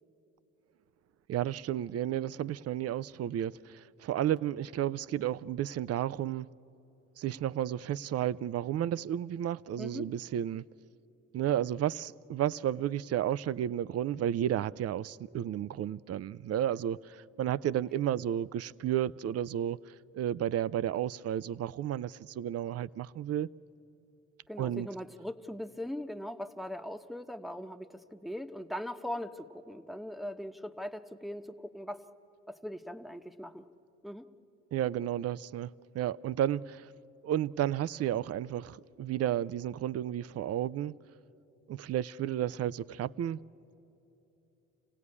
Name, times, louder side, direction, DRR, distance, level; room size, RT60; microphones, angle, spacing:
voice 1, 1.3-6.5 7.2-10.6 11.3-19.8 20.1-23.5 24.6-24.9 34.7-36.9 37.2-41.0 41.7-43.4, right 11 dB, 55° right, 0.5 m, -32 dB
voice 2, 24.5-32.0 32.5-33.7 34.0-34.2, equal, ahead, 1.0 m, -40 dB
26.5 x 17.0 x 9.7 m
cardioid pair, 90°, 30 cm